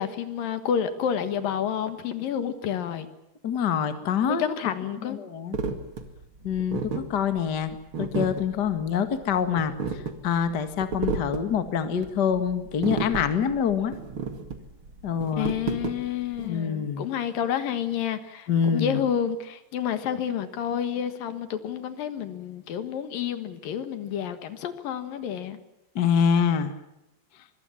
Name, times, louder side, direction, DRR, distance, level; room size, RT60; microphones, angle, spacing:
voice 1, 0.0-3.1 4.3-5.2 15.3-25.6, left 8 dB, 60° left, 10 dB, 2.8 m, -29 dB
voice 2, 3.4-4.5 5.0-5.6 6.4-13.9 15.0-15.5 16.4-17.1 18.5-19.0 25.9-26.7, left 7 dB, 80° left, 9 dB, 0.9 m, -26 dB
sound 1, 5.5-16.5, right 5 dB, 40° right, 2.1 m, -33 dB
24.5 x 21.5 x 7.2 m, 0.91 s
omnidirectional pair, 5.1 m